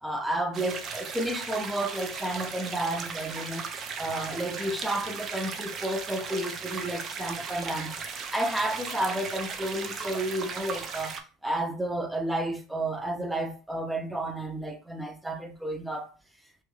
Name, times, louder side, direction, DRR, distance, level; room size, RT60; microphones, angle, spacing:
voice 1, 0.0-3.7 4.0-16.1, right 1 dB, 5° right, 0.8 m, -31 dB
sound 1, 0.5-11.2, right 5 dB, 40° right, 0.6 m, -37 dB
3.4 x 2.4 x 3.2 m
hypercardioid pair, 70°, 0 cm